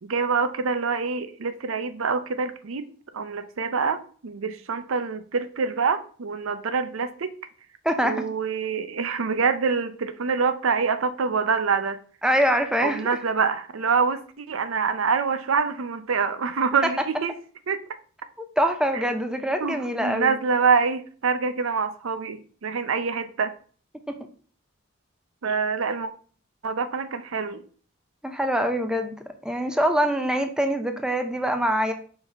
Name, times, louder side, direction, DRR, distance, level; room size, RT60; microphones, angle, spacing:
voice 1, 0.0-2.8 3.1-7.3 8.0-12.0 12.8-17.3 17.7-17.8 19.6-23.5 25.4-26.1 26.6-27.6, right 5 dB, 90° right, 0.6 m, -25 dB
voice 2, 7.8-8.2 12.2-13.2 18.6-20.4 24.1-24.2 28.2-29.2 29.4-31.9, equal, 5° right, 0.5 m, -24 dB
5.4 x 4.0 x 4.4 m
head